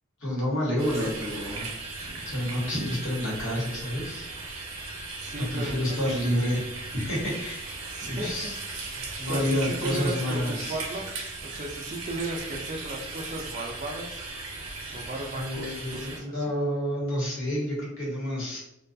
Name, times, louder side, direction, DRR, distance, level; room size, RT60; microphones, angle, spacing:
voice 1, 0.2-1.7 2.3-4.3 5.5-7.8 8.1-8.6 9.2-10.8 15.3-18.6, equal, 60° left, -5 dB, 1.1 m, -29 dB
sound 1, 0.8-16.2, right 3 dB, 80° right, 0.6 m, -37 dB
voice 2, 2.0-2.4 5.2-6.0 7.9-8.3 8.9-14.2 14.9-16.5, right 1 dB, 35° right, 2 dB, 0.4 m, -36 dB
2.5 x 2.3 x 2.5 m, 0.86 s
head